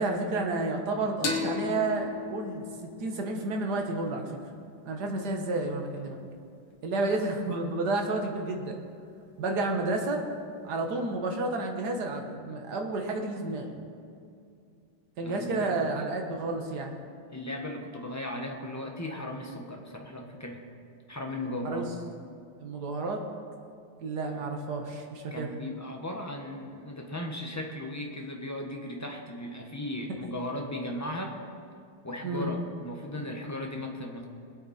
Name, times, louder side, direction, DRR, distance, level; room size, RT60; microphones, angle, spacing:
voice 1, 0.0-2.6 3.0-4.4 4.9-6.2 6.8-8.8 9.4-10.2 10.6-13.7 15.2-17.0 21.7-21.9 22.6-23.2 24.0-25.5 32.2-32.5, right 2 dB, 55° right, 2 dB, 1.9 m, -31 dB
sound 1, 1.2-4.6, left 4 dB, 75° left, 2.1 m, -36 dB
voice 2, 15.2-15.8 17.3-20.6 21.1-21.9 24.4-24.5 25.3-31.4 32.0-34.3, left 1 dB, 10° left, 1 dB, 1.0 m, -36 dB
22.5 x 8.6 x 4.3 m, 2.4 s
omnidirectional pair, 2.2 m